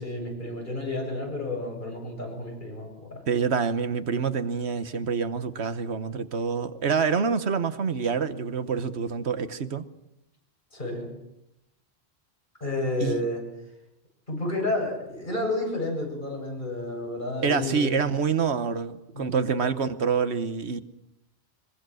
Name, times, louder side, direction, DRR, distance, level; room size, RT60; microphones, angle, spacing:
voice 1, 0.0-3.2 10.7-11.1 12.6-13.4 14.3-17.9 19.1-19.5, left 2 dB, 50° left, 7.9 m, -31 dB
voice 2, 3.3-9.8 13.0-13.2 17.4-20.8, right 6 dB, 80° right, 1.4 m, -26 dB
23.5 x 22.5 x 6.4 m
omnidirectional pair, 1.1 m